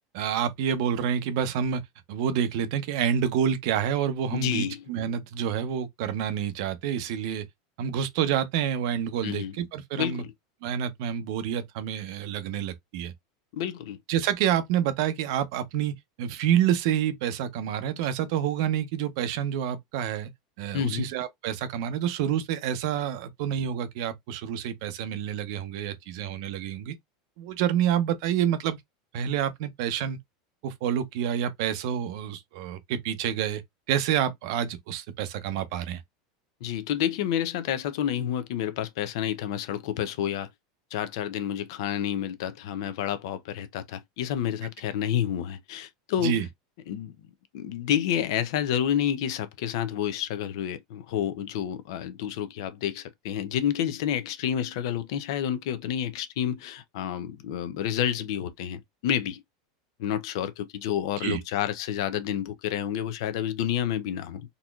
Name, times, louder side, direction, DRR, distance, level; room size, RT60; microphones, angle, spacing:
voice 1, 0.1-1.8 2.1-7.5 7.8-10.2 10.6-13.1 14.1-20.3 20.6-26.9 27.4-28.8 29.1-30.2 30.6-33.6 33.9-36.0 46.2-46.5 61.2-61.4, right 9 dB, 55° right, 0.8 m, -28 dB
voice 2, 4.3-4.8 9.2-9.6 10.0-10.3 13.5-14.0 20.7-21.1 36.6-40.5 40.9-46.4 46.9-47.2 47.5-59.4 60.0-64.5, left 10 dB, 60° left, 0.6 m, -29 dB
3.9 x 2.9 x 2.3 m
supercardioid pair, 165°, 3 cm